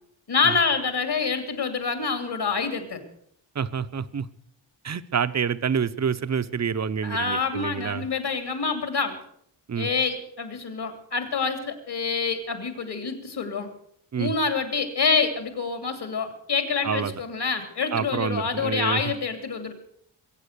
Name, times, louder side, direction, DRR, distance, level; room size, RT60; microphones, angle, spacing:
voice 1, 0.3-3.0 7.0-9.2 9.8-13.7 14.2-19.7, left 5 dB, 55° left, 8 dB, 2.9 m, -26 dB
voice 2, 3.5-4.3 4.8-8.0 9.7-9.9 14.1-14.3 16.8-17.1 17.9-19.0, right 7 dB, 35° right, 13 dB, 0.7 m, -27 dB
22.5 x 8.9 x 6.7 m, 0.68 s
wide cardioid pair, 125°, 47 cm